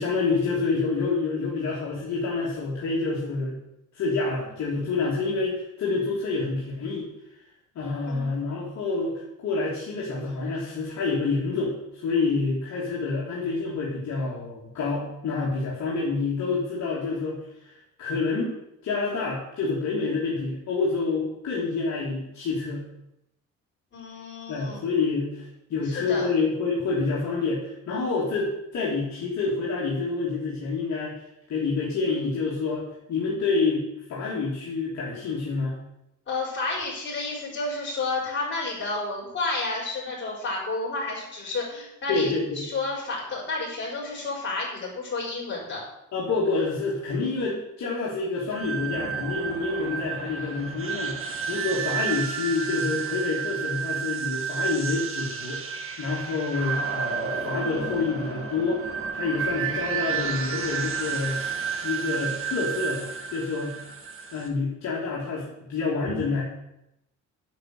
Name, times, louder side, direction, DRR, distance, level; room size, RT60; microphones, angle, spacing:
voice 1, 0.0-3.6 3.9-7.1 7.7-17.7 18.0-18.5 18.8-22.8 24.5-31.2 31.5-35.7 42.1-42.7 46.1-51.2 51.5-61.4 61.8-63.8 64.3-66.4, left 4 dB, 65° left, -6 dB, 3.0 m, -28 dB
voice 2, 23.9-24.8 25.9-26.3 36.3-42.3 42.6-45.8, left 3 dB, 40° left, -4 dB, 5.1 m, -31 dB
sound 1, 48.5-64.5, right 6 dB, 45° right, 1.7 m, -31 dB
10.5 x 6.3 x 7.8 m, 0.85 s
cardioid pair, 145°, 30 cm